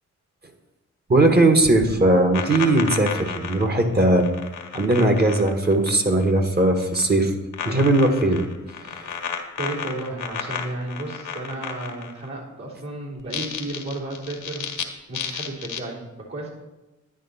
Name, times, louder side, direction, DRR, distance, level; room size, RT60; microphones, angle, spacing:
voice 1, 1.1-4.3 4.7-7.3 7.6-8.4 8.9-9.0, right 2 dB, 30° right, 5 dB, 1.5 m, -19 dB
sound 1, 1.6-6.3 6.6-7.2 7.5-12.3 13.2-14.8 15.1-15.8, left 7 dB, 85° left, 1.4 m, -32 dB
voice 2, 9.6-16.5, right 2 dB, 60° right, -6 dB, 3.5 m, -33 dB
10.5 x 10.0 x 4.3 m, 1.1 s
cardioid pair, 80°, 31 cm